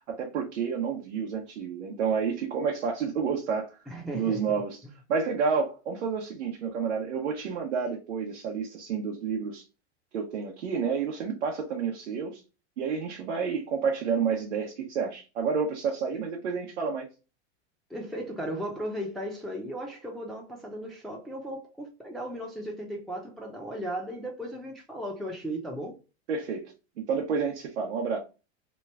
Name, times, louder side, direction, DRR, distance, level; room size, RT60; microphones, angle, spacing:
voice 1, 0.1-3.8 4.1-4.8 5.1-9.6 10.1-12.4 12.8-17.1 26.3-26.7 27.1-28.2, right 6 dB, 80° right, 0.9 m, -30 dB
voice 2, 3.9-4.9 17.9-25.9, equal, ahead, 0.7 m, -36 dB
3.0 x 2.4 x 3.2 m
hypercardioid pair, 105°, 35 cm